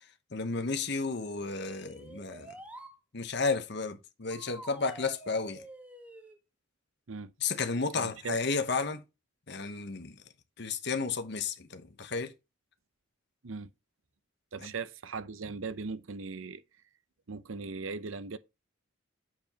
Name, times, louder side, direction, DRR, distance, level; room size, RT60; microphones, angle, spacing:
voice 1, 0.3-2.5 3.1-5.6 7.4-9.0 9.5-10.2 10.6-12.3 14.6-14.7, left 4 dB, 55° left, 1.0 m, -32 dB
sound 1, 1.1-3.0 4.3-6.4, right 1 dB, 5° right, 1.3 m, -48 dB
voice 2, 7.9-8.4 13.4-13.7 14.5-16.6 17.3-18.4, right 4 dB, 70° right, 0.7 m, -39 dB
7.6 x 7.0 x 2.9 m
head